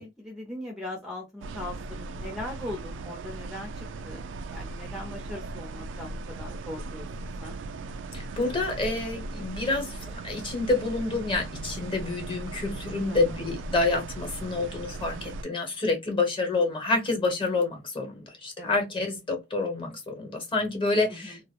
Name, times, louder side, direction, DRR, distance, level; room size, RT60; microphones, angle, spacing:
voice 1, 0.0-7.6 13.1-13.4 18.6-18.8 21.1-21.4, left 1 dB, 5° right, 0.5 m, -40 dB
sound 1, 1.4-15.4, right 2 dB, 80° right, 0.3 m, -38 dB
voice 2, 8.1-21.4, left 3 dB, 30° left, 0.9 m, -28 dB
2.3 x 2.0 x 2.8 m
head